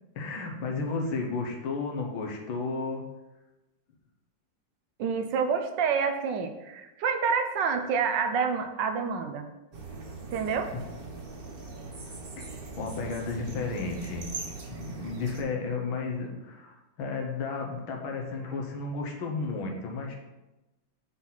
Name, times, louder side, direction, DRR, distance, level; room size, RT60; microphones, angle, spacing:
voice 1, 0.2-3.0 12.8-14.3 14.7-20.2, left 4 dB, 80° left, 1 dB, 1.8 m, -33 dB
voice 2, 5.0-9.5 10.3-10.7, right 6 dB, 70° right, 6 dB, 1.2 m, -28 dB
sound 1, 9.7-15.4, right 3 dB, 45° right, 0.7 m, -41 dB
6.0 x 4.0 x 5.6 m, 1.0 s
omnidirectional pair, 2.2 m